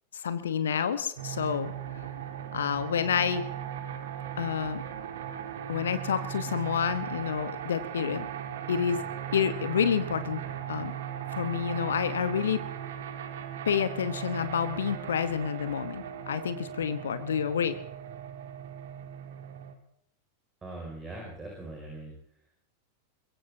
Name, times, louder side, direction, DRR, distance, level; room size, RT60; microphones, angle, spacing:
voice 1, 0.1-1.7 2.5-3.4 4.4-4.8 5.7-8.3 8.7-9.0 9.3-10.4 10.7-11.0 11.3-12.6 13.6-17.8, left 7 dB, 65° left, 12 dB, 1.1 m, -29 dB
sound 1, 1.2-19.7, right 9 dB, 60° right, 2.0 m, -38 dB
voice 2, 20.6-22.1, right 2 dB, 15° right, -1 dB, 5.8 m, -41 dB
23.0 x 22.0 x 2.8 m, 0.72 s
figure-of-eight pair, 90°, 0 cm